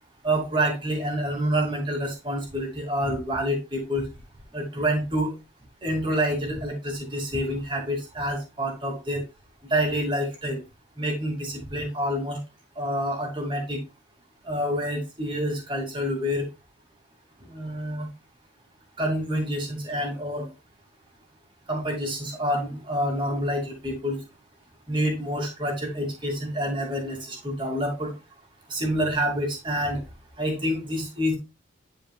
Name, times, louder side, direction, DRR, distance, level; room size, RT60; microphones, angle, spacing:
voice 1, 0.2-4.1 4.5-5.3 5.8-9.2 9.7-10.6 11.0-12.4 12.8-13.8 14.5-16.5 17.5-18.1 19.0-20.5 21.7-24.2 24.9-28.1 28.7-30.0 30.4-31.4, equal, 25° right, 0 dB, 2.5 m, -27 dB
10.5 x 5.0 x 2.4 m, 0.27 s
head